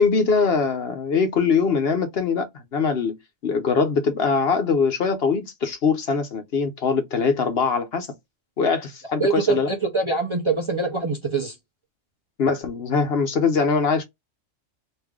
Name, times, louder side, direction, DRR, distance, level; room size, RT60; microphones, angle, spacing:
voice 1, 0.0-8.1 8.6-9.7 12.4-14.0, left 5 dB, 55° left, 0.9 m, -22 dB
voice 2, 9.2-11.5, right 4 dB, 30° right, 0.6 m, -24 dB
3.2 x 2.6 x 3.5 m
omnidirectional pair, 1.3 m